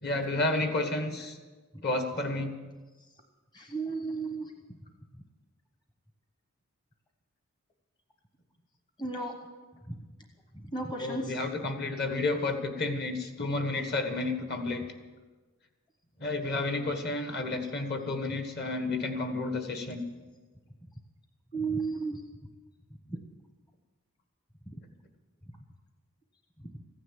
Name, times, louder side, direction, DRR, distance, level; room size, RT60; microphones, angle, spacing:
voice 1, 0.0-1.4 1.8-2.6 11.0-14.8 16.2-20.0, left 2 dB, 50° left, 6 dB, 1.6 m, -31 dB
voice 2, 3.5-4.5 9.0-9.3 9.9-10.0 10.7-11.3 21.5-22.2 24.7-24.8, right 3 dB, 20° left, 3 dB, 1.0 m, -33 dB
15.0 x 9.9 x 7.5 m, 1.3 s
head